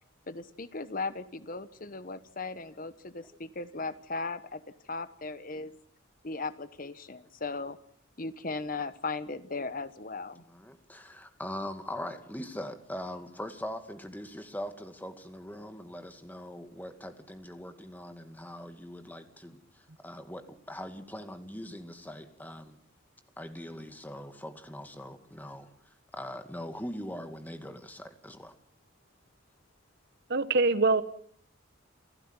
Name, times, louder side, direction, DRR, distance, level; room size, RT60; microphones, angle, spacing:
voice 1, 0.3-4.6 4.9-5.7 6.2-7.8 8.2-10.4, left 3 dB, 45° left, 13 dB, 1.2 m, -37 dB
voice 2, 10.4-22.8 23.4-25.7 26.1-28.6, left 1 dB, 10° left, 8 dB, 2.2 m, -41 dB
voice 3, 30.3-31.0, right 3 dB, 55° right, 14 dB, 1.3 m, -23 dB
29.0 x 15.0 x 9.8 m, 0.63 s
head